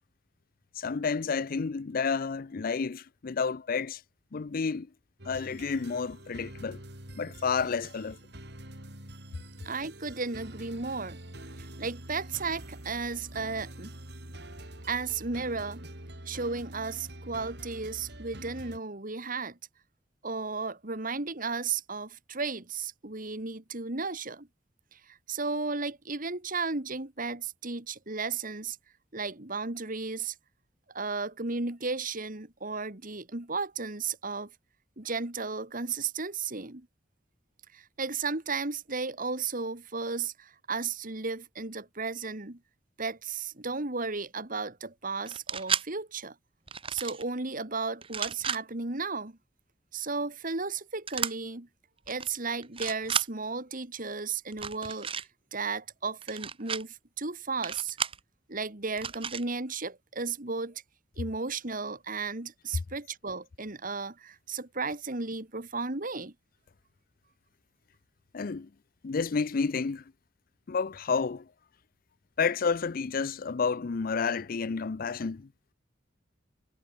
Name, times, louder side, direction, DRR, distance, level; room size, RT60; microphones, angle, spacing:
voice 1, 0.8-4.0 4.3-4.9 5.2-6.8 7.1-8.2 68.3-68.7 69.0-70.0 70.7-71.5 72.4-75.5, left 5 dB, 50° left, 0.5 m, -30 dB
sound 1, 5.2-18.8, right 1 dB, 60° right, 6.5 m, -45 dB
voice 2, 9.6-11.2 11.6-14.0 14.9-15.8 16.3-19.6 20.2-24.5 24.9-28.8 29.1-30.4 30.9-34.5 35.0-36.9 37.7-42.6 43.0-46.4 46.9-49.4 49.9-51.7 52.1-58.0 58.5-60.8 61.2-66.3, right 4 dB, 45° right, 2.3 m, -34 dB
sound 2, 45.3-45.8 46.7-47.2 48.0-48.6 51.1-51.3 52.1-52.3 52.6-53.3 54.5-55.2 56.2-56.8 57.6-58.2 59.0-59.4, right 7 dB, 30° right, 1.4 m, -33 dB
head